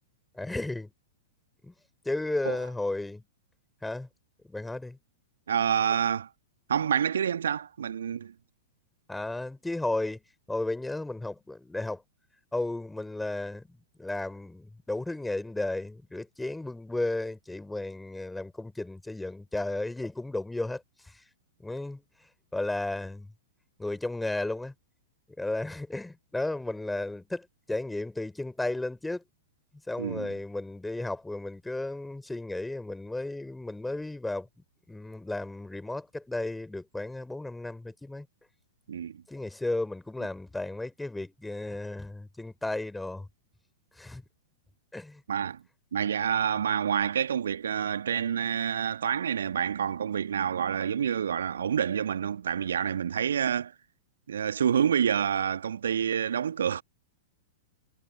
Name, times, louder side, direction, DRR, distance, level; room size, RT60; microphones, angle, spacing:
voice 1, 0.3-0.9 1.6-1.7 2.0-3.2 3.8-4.1 4.5-5.0 9.1-10.2 10.5-12.0 12.5-21.2 21.6-22.0 22.5-23.3 23.8-24.7 25.4-29.2 29.9-34.5 34.9-38.3 39.3-43.3 44.0-44.2 44.9-45.2, left 2 dB, 5° left, 3.8 m, -34 dB
voice 2, 5.5-6.3 6.7-8.3 30.0-30.3 38.9-39.2 45.3-45.6 45.9-53.7 54.3-56.8, right 8 dB, 65° right, 1.7 m, -28 dB
figure-of-eight pair, 100°, 0 cm